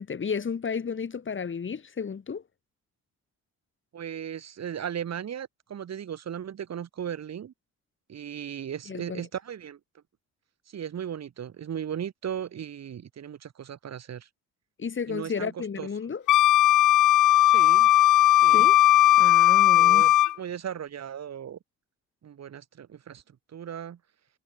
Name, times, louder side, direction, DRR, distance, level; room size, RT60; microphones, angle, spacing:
voice 1, 0.0-2.4 8.9-9.2 14.8-16.2 18.5-18.8 19.2-20.0, left 6 dB, 40° left, 5.0 m, -32 dB
voice 2, 3.9-7.5 8.1-10.0 10.7-14.3 15.1-15.9 17.5-17.9 18.4-18.7 19.3-19.4 19.8-21.6 22.2-24.0, right 9 dB, 60° right, 7.2 m, -37 dB
Wind instrument woodwind instrument, 16.3-20.3, left 14 dB, 80° left, 2.1 m, -18 dB
cardioid pair, 90°, 30 cm